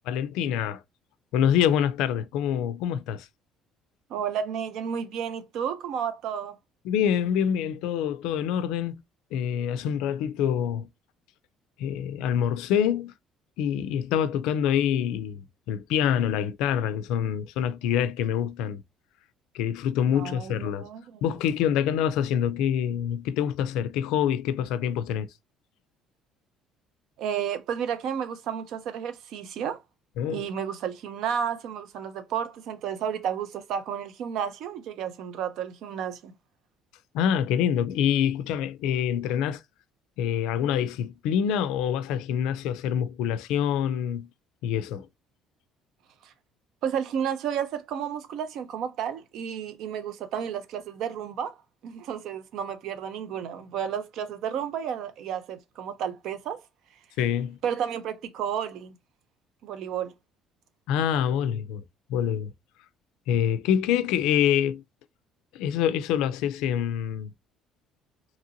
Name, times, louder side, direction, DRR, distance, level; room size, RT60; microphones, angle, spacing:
voice 1, 0.1-0.8 1.3-3.3 6.8-9.0 9.3-10.9 11.8-13.1 13.6-18.8 19.5-20.9 21.2-25.3 30.2-30.4 37.1-39.6 40.2-44.3 44.6-45.1 57.2-57.6 60.9-61.8 62.1-62.5 63.3-64.8 65.5-67.3, left 9 dB, 85° left, 0.3 m, -26 dB
voice 2, 4.1-6.6 20.1-21.2 27.2-29.8 30.3-36.3 46.2-46.3 46.8-51.5 51.8-56.6 57.6-58.9 59.6-60.1, right 8 dB, 60° right, 0.5 m, -32 dB
2.8 x 2.5 x 2.7 m
cardioid pair, 155°, 0 cm